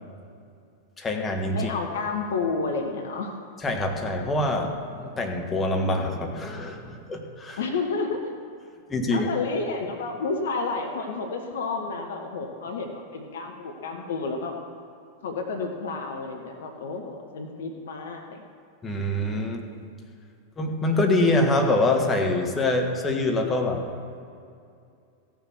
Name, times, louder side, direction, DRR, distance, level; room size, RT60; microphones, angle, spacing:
voice 1, 1.0-1.7 3.6-7.6 8.9-9.3 18.8-19.7 20.6-23.9, left 2 dB, 15° left, 2 dB, 1.6 m, -25 dB
voice 2, 1.5-3.3 7.6-8.2 9.1-14.5 15.2-18.4, left 4 dB, 60° left, 4 dB, 1.1 m, -30 dB
15.5 x 7.1 x 6.1 m, 2.4 s
figure-of-eight pair, 90°, 0 cm